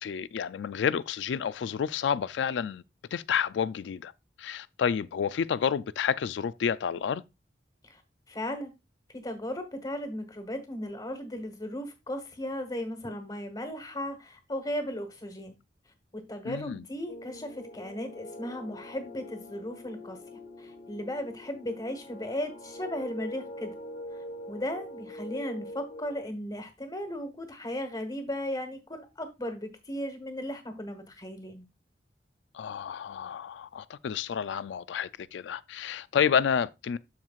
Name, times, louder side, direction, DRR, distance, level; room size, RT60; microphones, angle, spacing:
voice 1, 0.0-2.8 3.1-4.1 4.4-7.2 16.4-16.8 32.5-37.0, left 7 dB, 75° left, 0.3 m, -30 dB
voice 2, 8.3-8.7 9.1-15.5 16.1-23.7 24.1-31.6, left 1 dB, 25° left, 1.4 m, -36 dB
sound 1, 17.1-26.2, left 1 dB, 60° left, 1.2 m, -44 dB
13.0 x 4.6 x 2.4 m
head